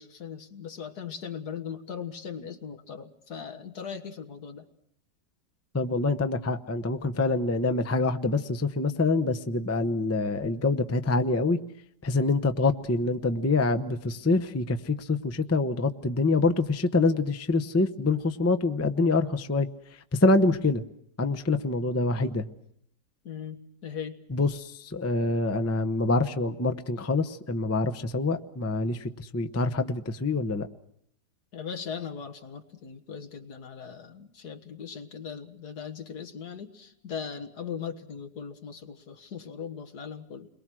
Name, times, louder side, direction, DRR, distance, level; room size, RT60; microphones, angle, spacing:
voice 1, 0.0-4.7 23.2-24.2 31.5-40.5, left 7 dB, 75° left, 7 dB, 2.1 m, -39 dB
voice 2, 5.7-11.6 12.0-19.7 20.1-20.8 21.2-22.4 24.3-30.7, left 3 dB, 15° left, 6 dB, 0.5 m, -26 dB
30.0 x 22.5 x 6.2 m, 0.71 s
omnidirectional pair, 1.7 m